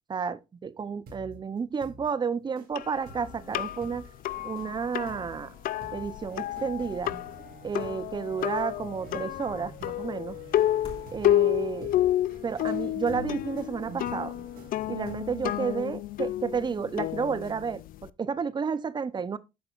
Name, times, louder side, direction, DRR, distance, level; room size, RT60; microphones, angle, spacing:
voice 1, 0.1-4.0 4.4-5.5 5.9-7.1 7.6-10.4 11.1-11.9 12.4-14.3 14.9-19.4, right 6 dB, 25° right, 0.6 m, -31 dB
sound 1, 1.1-1.4 1.8-2.1 2.6-2.7 3.0-15.7, right 2 dB, 60° right, 4.5 m, -48 dB
sound 2, 2.7-18.1, left 13 dB, 55° left, 0.4 m, -30 dB
sound 3, 8.2-12.4 13.4-13.5, equal, 35° left, 3.2 m, -53 dB
13.0 x 5.4 x 2.4 m
cardioid pair, 110°, 17 cm